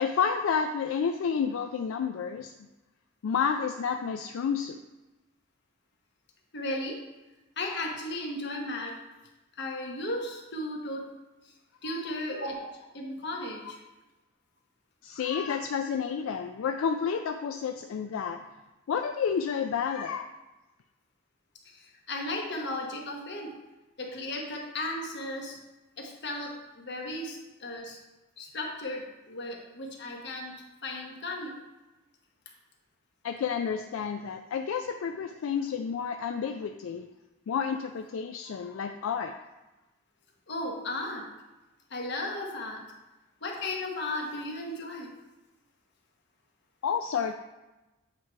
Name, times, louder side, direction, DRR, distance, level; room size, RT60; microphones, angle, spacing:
voice 1, 0.0-2.5 3.2-4.8 11.9-12.1 15.0-18.4 18.9-20.3 33.2-37.1 37.5-39.3 46.8-47.3, left 6 dB, 75° left, 6 dB, 0.3 m, -30 dB
voice 2, 6.5-7.0 7.6-9.0 9.5-11.1 11.4-11.5 11.8-13.8 21.6-23.6 24.0-25.6 26.0-28.0 28.4-30.6 30.8-31.6 40.5-41.3 41.9-42.8 43.4-45.1, left 1 dB, 55° left, 1 dB, 1.1 m, -35 dB
8.2 x 3.2 x 4.6 m, 1.1 s
head